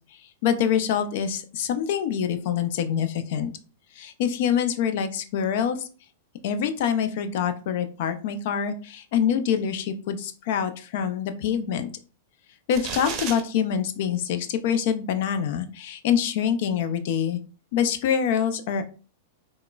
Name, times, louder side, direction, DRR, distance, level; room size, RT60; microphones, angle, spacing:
voice 1, 0.1-3.5 3.9-5.9 6.4-11.9 12.7-17.4 17.7-18.9, left 8 dB, 60° left, 9 dB, 0.4 m, -25 dB
sound 1, 12.7-13.4, right 6 dB, 40° right, 0.6 m, -32 dB
3.6 x 2.0 x 2.3 m, 0.37 s
hypercardioid pair, 110°, 0 cm